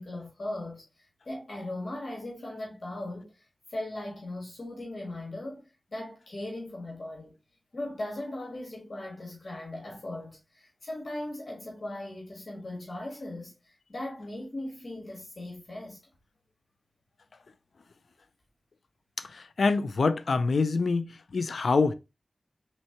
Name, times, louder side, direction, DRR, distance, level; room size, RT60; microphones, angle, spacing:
voice 1, 0.0-5.6 5.9-7.3 7.7-16.0, left 1 dB, 60° left, 1.7 m, -38 dB
voice 2, 19.3-21.9, left 4 dB, 80° left, 0.4 m, -26 dB
4.3 x 3.6 x 2.9 m
cardioid pair, 40°, 0 cm